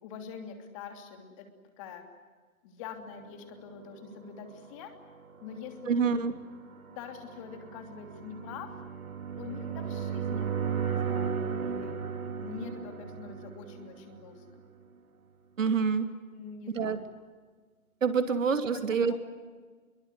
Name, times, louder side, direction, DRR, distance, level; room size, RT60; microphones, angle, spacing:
voice 1, 0.0-1.4 1.8-2.0 2.6-4.9 5.4-6.2 6.9-8.7 9.4-12.0 12.4-14.6 16.3-17.0 18.1-18.2 18.7-19.2, left 6 dB, 25° left, 5 dB, 3.0 m, -44 dB
sound 1, 3.9-14.7, right 6 dB, 80° right, 3.1 m, -36 dB
voice 2, 5.9-6.3 15.6-16.1 16.7-17.0 18.0-19.2, right 6 dB, 65° right, 9 dB, 2.9 m, -27 dB
24.5 x 23.0 x 9.7 m, 1.5 s
hypercardioid pair, 160°, 42 cm